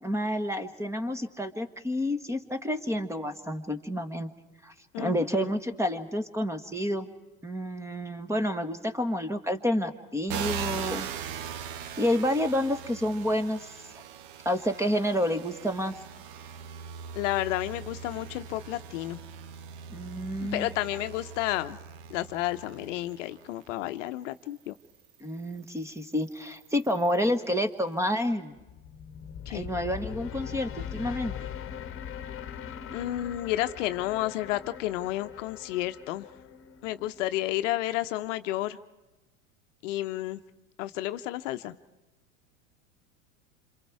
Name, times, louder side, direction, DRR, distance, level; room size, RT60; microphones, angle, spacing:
voice 1, 0.0-4.3 4.6-7.1 7.4-11.1 11.4-11.5 12.0-13.7 14.4-15.9 19.9-20.7 25.2-28.5 29.5-31.3, equal, 5° right, 11 dB, 1.4 m, -29 dB
voice 2, 4.9-5.5 17.1-19.2 20.4-21.8 22.1-24.7 29.5-29.7 32.9-36.3 36.8-38.8 39.8-40.4 40.8-41.8, left 15 dB, 65° left, 11 dB, 0.9 m, -31 dB
sound 1, 10.3-23.7 24.4-27.3, right 7 dB, 55° right, 1.1 m, -41 dB
sound 2, 28.6-37.7, left 9 dB, 30° left, 1.4 m, -41 dB
27.0 x 27.0 x 4.7 m, 1.1 s
hypercardioid pair, 90°, 40 cm